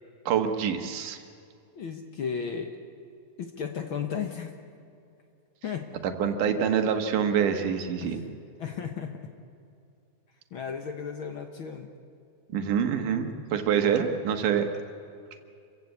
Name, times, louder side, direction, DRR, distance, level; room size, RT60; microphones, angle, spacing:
voice 1, 0.3-1.2 6.0-8.2 12.5-14.7, right 7 dB, 85° right, 6 dB, 3.0 m, -26 dB
voice 2, 1.7-2.8 3.4-4.5 5.6-5.9 8.0-8.2 8.6-9.2 10.5-11.9, left 7 dB, 60° left, 5 dB, 1.5 m, -34 dB
27.0 x 15.5 x 8.3 m, 2.5 s
omnidirectional pair, 3.6 m